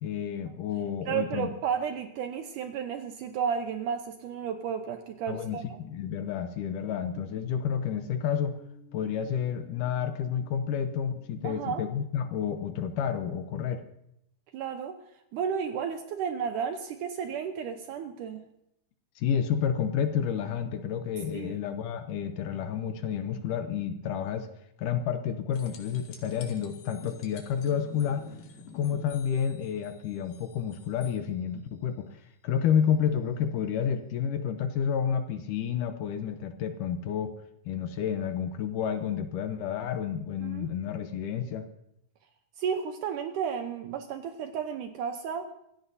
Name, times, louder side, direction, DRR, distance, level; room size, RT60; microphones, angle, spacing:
voice 1, 0.0-1.5 5.3-8.6 8.9-13.8 19.2-24.5 24.8-28.3 28.7-37.3 37.7-41.7, left 8 dB, 75° left, 8 dB, 2.2 m, -30 dB
voice 2, 1.1-5.8 11.4-11.8 14.5-15.0 15.3-18.4 21.3-21.6 40.4-40.7 42.6-45.5, right 7 dB, 75° right, 7 dB, 2.2 m, -33 dB
sound 1, 4.1-11.6, left 6 dB, 40° left, 4.7 m, -60 dB
sound 2, 25.5-31.2 34.1-34.2, left 5 dB, 90° left, 3.7 m, -48 dB
25.0 x 15.5 x 2.7 m, 0.79 s
omnidirectional pair, 4.1 m